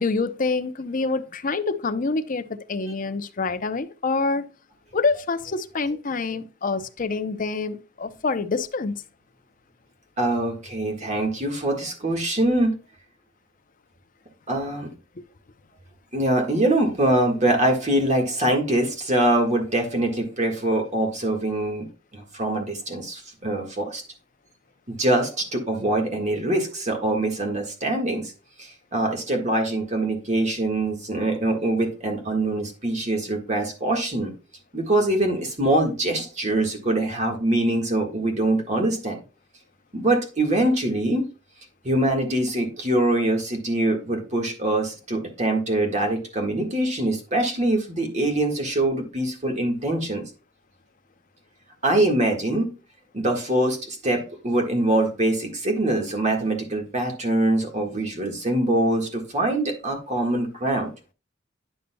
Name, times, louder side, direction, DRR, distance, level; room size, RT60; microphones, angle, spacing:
voice 1, 0.0-4.5 4.9-9.0 15.2-15.3, left 3 dB, 45° left, 0.6 m, -26 dB
voice 2, 10.2-12.8 14.5-14.9 16.1-21.9 22.1-24.0 24.9-28.3 28.6-34.3 34.7-39.2 39.9-41.2 41.8-50.2 51.8-52.7 53.1-60.9, right 1 dB, 40° right, 1.6 m, -23 dB
9.8 x 6.7 x 2.2 m
head